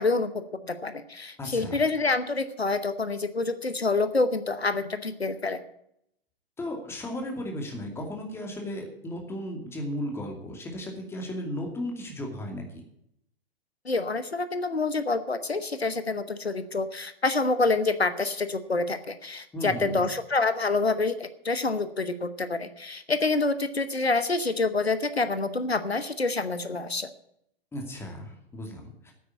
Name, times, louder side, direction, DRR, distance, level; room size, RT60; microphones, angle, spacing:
voice 1, 0.0-5.6 13.8-27.1, left 3 dB, 85° left, 11 dB, 1.0 m, -27 dB
voice 2, 1.4-1.8 6.6-12.8 19.5-20.0 27.7-29.1, left 1 dB, 10° left, 1 dB, 2.5 m, -35 dB
9.4 x 8.7 x 9.7 m, 0.76 s
figure-of-eight pair, 115°, 31 cm